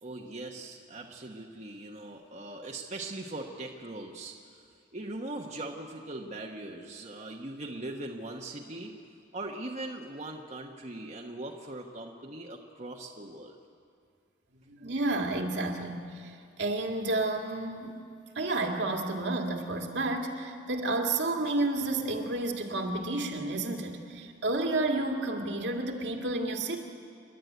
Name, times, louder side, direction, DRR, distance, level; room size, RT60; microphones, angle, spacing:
voice 1, 0.0-4.3 4.9-8.9 9.3-13.6, right 2 dB, 40° right, 0 dB, 1.2 m, -40 dB
voice 2, 14.7-18.0 18.3-26.8, right 2 dB, 70° right, 1 dB, 2.2 m, -31 dB
29.5 x 12.0 x 9.4 m, 2.3 s
head